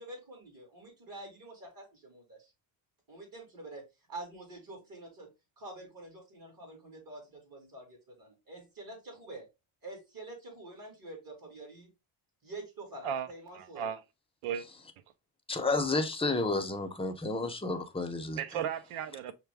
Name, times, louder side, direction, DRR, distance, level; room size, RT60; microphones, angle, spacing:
voice 1, 0.0-2.5 3.1-5.3 5.6-9.5 9.8-11.9 12.4-14.0, right 2 dB, 40° right, 2.2 m, -47 dB
voice 2, 13.5-14.0 14.4-14.6 18.4-19.3, right 8 dB, 85° right, 0.7 m, -35 dB
voice 3, 15.5-18.4, left 3 dB, 10° left, 0.7 m, -31 dB
5.7 x 2.2 x 3.4 m
cardioid pair, 100°, 50 cm